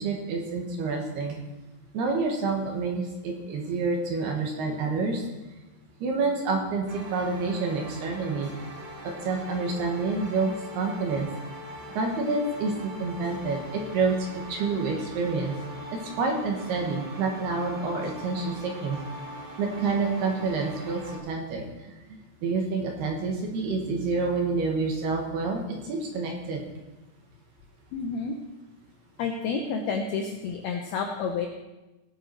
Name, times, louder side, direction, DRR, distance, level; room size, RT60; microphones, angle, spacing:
voice 1, 0.0-1.4 1.9-5.2 6.0-8.5 9.2-11.3 11.9-14.2 14.5-15.5 15.9-19.0 19.6-21.6 22.4-26.6, right 4 dB, 65° right, 1 dB, 3.0 m, -28 dB
sound 1, 6.9-21.2, equal, 35° right, 2.2 m, -42 dB
voice 2, 27.9-28.4 29.2-31.5, left 5 dB, 90° left, 3 dB, 2.2 m, -30 dB
19.0 x 8.0 x 4.6 m, 1.1 s
omnidirectional pair, 5.8 m